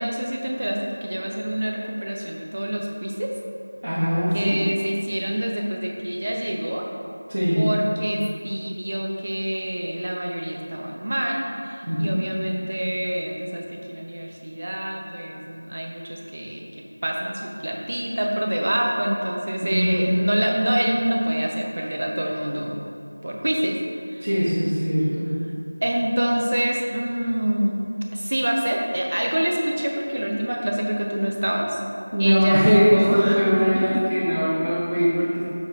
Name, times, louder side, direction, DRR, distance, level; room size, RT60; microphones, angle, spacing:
voice 1, 0.0-3.3 4.3-6.9 7.6-16.6 17.0-22.8 23.2-23.8 24.1-24.3 25.8-27.8 28.1-31.8 32.2-33.4 33.7-34.0, right 1 dB, 35° right, 0 dB, 0.6 m, -26 dB
voice 2, 3.8-4.6 7.3-7.7 11.8-12.2 19.6-20.0 24.2-25.3 32.1-35.4, equal, 55° right, -10 dB, 1.3 m, -21 dB
6.9 x 4.3 x 3.5 m, 2.6 s
figure-of-eight pair, 175°, 0 cm